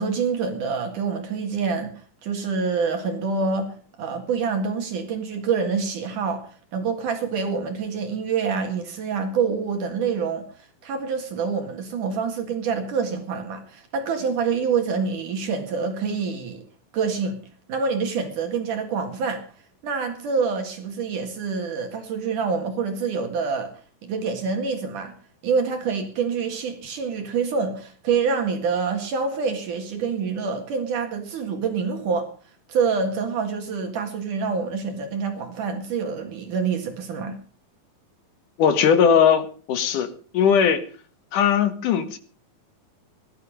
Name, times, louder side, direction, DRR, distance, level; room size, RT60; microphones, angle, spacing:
voice 1, 0.0-16.6 16.9-17.4 17.7-19.4 19.8-25.1 25.4-32.3 32.7-37.4, right 5 dB, 65° right, 3.3 m, -26 dB
voice 2, 38.6-40.1 40.3-40.8 41.3-42.2, left 7 dB, 65° left, 3.0 m, -19 dB
18.5 x 12.0 x 5.1 m
omnidirectional pair, 4.1 m